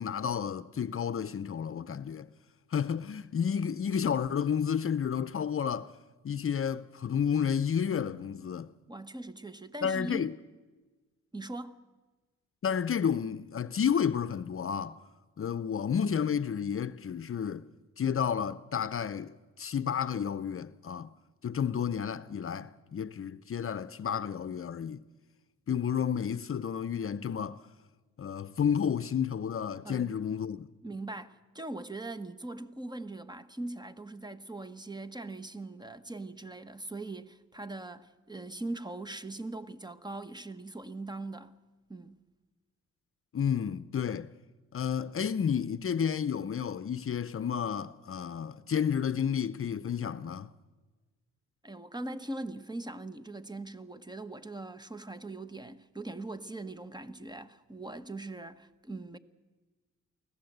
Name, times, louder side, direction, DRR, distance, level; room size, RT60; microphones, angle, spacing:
voice 1, 0.0-2.3 2.7-5.9 6.2-8.7 9.8-10.3 12.6-15.0 15.4-17.6 18.0-19.3 19.6-21.1 21.4-25.0 25.7-27.6 28.2-30.7 43.3-44.3 44.7-50.5, left 7 dB, 50° left, 0.7 m, -31 dB
voice 2, 8.9-10.3 11.3-11.8 29.8-30.1 30.8-41.5 41.9-42.2 51.6-59.2, right 2 dB, 15° right, 1.1 m, -41 dB
24.0 x 16.0 x 8.0 m
cardioid pair, 75°, 29 cm